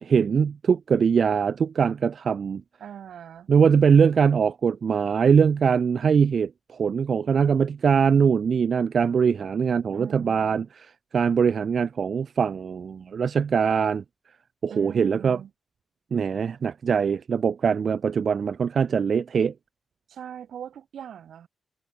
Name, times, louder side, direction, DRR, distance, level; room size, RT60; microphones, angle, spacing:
voice 1, 0.0-2.6 3.5-14.0 14.6-15.4 16.1-19.5, right 6 dB, 60° right, 1.5 m, -22 dB
voice 2, 2.8-3.5 9.9-10.6 14.7-15.5 20.1-21.5, right 9 dB, 80° right, 6.0 m, -40 dB
cardioid pair, 80°, 0 cm